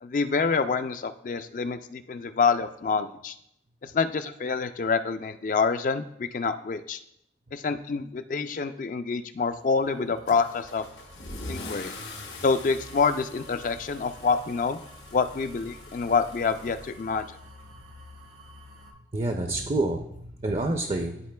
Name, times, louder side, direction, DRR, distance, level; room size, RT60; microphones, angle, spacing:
voice 1, 0.0-3.4 3.8-7.0 7.5-10.8 11.5-11.9 12.4-14.8 15.1-17.3, left 5 dB, 45° left, 10 dB, 0.3 m, -27 dB
sound 1, 9.5-18.9, equal, 85° right, 1.3 m, -51 dB
Car / Engine starting / Accelerating revving vroom, 10.3-17.6, left 2 dB, 90° left, 1.0 m, -43 dB
voice 2, 18.9-21.3, right 2 dB, 35° right, 4 dB, 0.4 m, -29 dB
12.5 x 4.3 x 2.2 m, 0.75 s
head